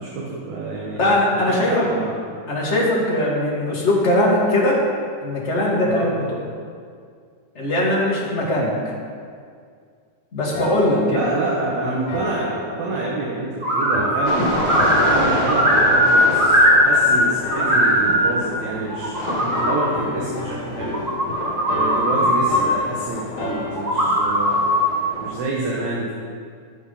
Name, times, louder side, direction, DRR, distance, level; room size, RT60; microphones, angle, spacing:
voice 1, 0.0-1.1 1.4-2.2 5.9-6.1 11.1-21.0 21.7-24.6 25.2-26.1, right 2 dB, 65° right, -4 dB, 2.4 m, -27 dB
voice 2, 1.0-1.9 2.5-4.8 5.2-6.1 7.5-8.7 10.3-11.2, left 1 dB, 25° left, -5 dB, 1.6 m, -20 dB
sound 1, 10.5-13.5 13.9-15.3 15.7-17.1 17.4-19.1 19.5-24.2, left 3 dB, 80° left, 2.4 m, -34 dB
sound 2, 13.6-14.3 14.6-17.2 17.5-18.3 18.9-19.9 20.8-22.6 23.7-24.9, equal, 85° right, 0.7 m, -18 dB
sound 3, 14.2-25.4, left 1 dB, 55° left, 2.7 m, -29 dB
12.0 x 6.2 x 5.6 m, 2.1 s
omnidirectional pair, 3.7 m